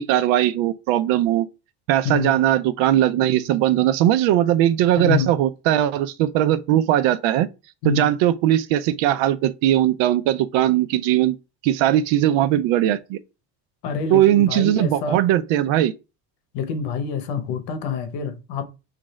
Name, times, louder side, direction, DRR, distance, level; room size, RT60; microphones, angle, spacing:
voice 1, 0.0-1.5 1.9-7.5 7.8-11.4 11.6-13.2 14.1-15.9, right 12 dB, 75° right, 0.5 m, -19 dB
voice 2, 5.0-5.3 7.8-8.1 13.8-15.2 16.5-18.6, left 6 dB, 70° left, 0.9 m, -27 dB
3.1 x 2.5 x 3.9 m
cardioid pair, 140°, 46 cm